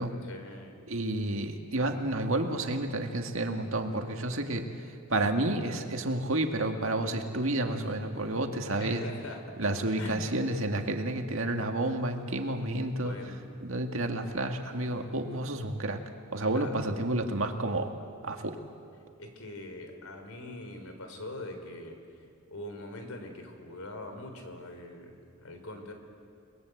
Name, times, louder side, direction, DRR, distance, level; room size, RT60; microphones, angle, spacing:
voice 1, 0.2-0.7 8.8-9.4 9.9-10.3 13.0-13.5 16.5-16.7 19.2-22.0 22.5-25.1 25.4-25.9, left 1 dB, 90° left, 5 dB, 4.0 m, -42 dB
voice 2, 0.9-4.7 5.1-9.1 9.6-13.1 13.6-16.0 16.3-17.9 18.2-18.6, right 2 dB, 65° right, 4 dB, 2.1 m, -30 dB
30.0 x 20.5 x 8.0 m, 2.3 s
head